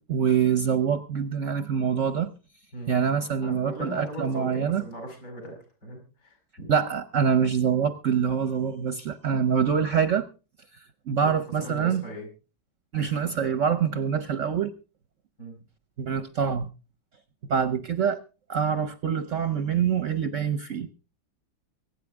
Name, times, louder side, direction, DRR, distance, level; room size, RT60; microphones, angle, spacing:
voice 1, 0.0-2.3 2.9-4.8 6.7-10.3 11.1-12.0 12.9-14.7 16.0-16.7 17.5-18.2 18.5-20.9, right 7 dB, 50° right, 11 dB, 1.0 m, -25 dB
voice 2, 3.4-6.7 11.2-12.3 15.4-15.6, equal, 55° left, 2 dB, 6.5 m, -39 dB
24.5 x 9.3 x 3.6 m, 0.32 s
omnidirectional pair, 2.1 m